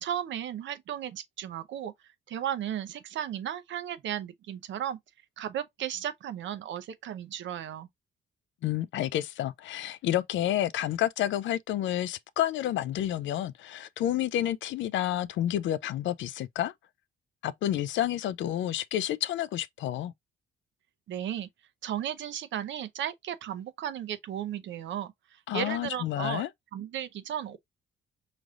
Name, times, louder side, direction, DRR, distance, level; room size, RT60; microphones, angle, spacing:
voice 1, 0.0-1.9 2.3-5.0 5.4-7.9 21.1-21.5 21.8-26.5 26.7-27.6, right 10 dB, 70° right, 0.7 m, -35 dB
voice 2, 8.6-16.7 17.4-20.1 25.5-26.5, left 12 dB, 70° left, 0.4 m, -30 dB
5.0 x 3.2 x 2.4 m
cardioid pair, 90°, 20 cm